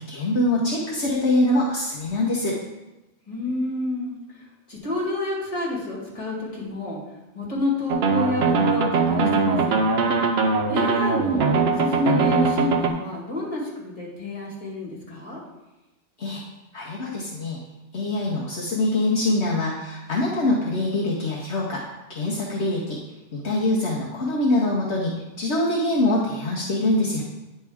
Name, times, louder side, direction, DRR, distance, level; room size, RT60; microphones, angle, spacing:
voice 1, 0.0-2.6 16.2-16.4 16.7-17.6 17.9-21.8 22.1-23.0 23.3-27.2, left 1 dB, 65° left, -4 dB, 1.2 m, -24 dB
voice 2, 3.3-4.2 4.7-7.0 7.3-9.8 10.7-15.4, left 2 dB, 30° left, -5 dB, 2.0 m, -29 dB
sound 1, 7.9-12.9, right 4 dB, 60° right, 0.9 m, -21 dB
9.5 x 4.3 x 3.5 m, 1.0 s
omnidirectional pair, 1.3 m